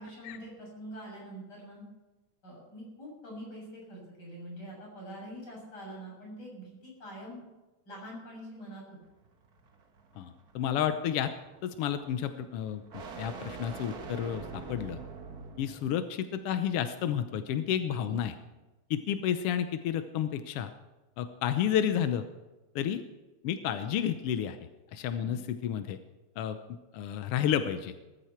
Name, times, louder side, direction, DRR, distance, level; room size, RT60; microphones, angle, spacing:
voice 1, 0.0-1.8 2.4-7.4 7.9-9.0 18.1-18.2 25.2-25.4, right 1 dB, 30° left, -3 dB, 7.3 m, -45 dB
sound 1, 9.0-16.1, right 4 dB, 45° right, 1.3 m, -45 dB
voice 2, 10.2-11.3 11.6-15.0 15.6-18.3 18.9-20.7 21.2-22.2 22.7-23.0 23.4-24.6 24.9-26.0 26.4-26.6 26.9-27.9, left 9 dB, 75° left, 9 dB, 1.3 m, -31 dB
20.0 x 14.0 x 4.5 m, 1.1 s
omnidirectional pair, 3.5 m